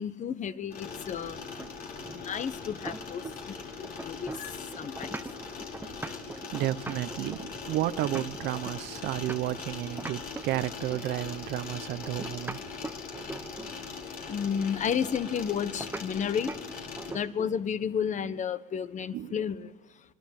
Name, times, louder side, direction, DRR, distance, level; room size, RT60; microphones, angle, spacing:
voice 1, 0.0-1.4 2.1-3.2 3.8-5.1 14.3-16.5 17.1-19.7, left 7 dB, 45° left, 1.3 m, -32 dB
sound 1, 0.7-17.1, left 5 dB, 60° left, 5.1 m, -41 dB
sound 2, 1.6-3.6 3.8-9.7 10.0-11.1 12.0-13.8 15.8-16.1 16.5-16.7 17.0-17.6, right 2 dB, 10° right, 1.0 m, -41 dB
voice 2, 5.8-12.6 19.1-19.4, right 15 dB, 80° right, 0.9 m, -32 dB
26.5 x 22.0 x 7.6 m
cardioid pair, 110°, 17 cm